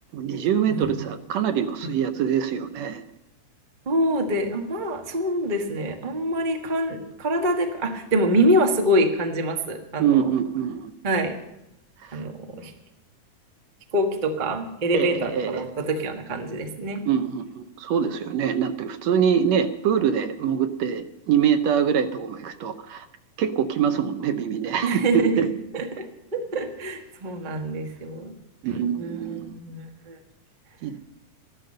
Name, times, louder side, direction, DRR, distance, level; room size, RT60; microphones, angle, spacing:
voice 1, 0.1-3.0 10.0-10.9 12.0-12.2 14.9-15.7 17.1-23.1 23.4-25.5 28.6-29.6 30.8-31.0, right 8 dB, 70° right, 9 dB, 1.7 m, -24 dB
voice 2, 3.9-10.3 11.0-11.3 12.1-12.7 13.9-17.0 24.8-25.5 25.7-28.3 29.0-30.2, right 1 dB, 90° right, 4 dB, 0.4 m, -25 dB
13.5 x 12.0 x 6.5 m, 0.89 s
omnidirectional pair, 3.6 m